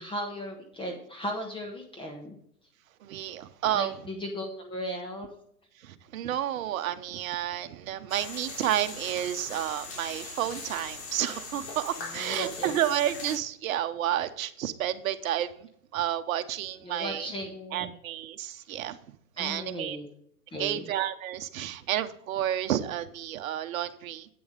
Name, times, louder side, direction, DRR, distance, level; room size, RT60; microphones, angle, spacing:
voice 1, 0.0-2.3 3.7-5.3 12.0-12.7 16.8-18.0 19.4-20.1 20.5-20.9, equal, 10° left, 2 dB, 1.3 m, -36 dB
voice 2, 3.0-3.9 5.8-17.3 17.7-19.0 19.4-20.0 20.6-24.3, right 11 dB, 60° right, 10 dB, 1.0 m, -31 dB
sound 1, 8.1-13.4, left 3 dB, 40° left, 3.4 m, -40 dB
8.7 x 7.0 x 5.2 m, 0.68 s
hypercardioid pair, 120°, 46 cm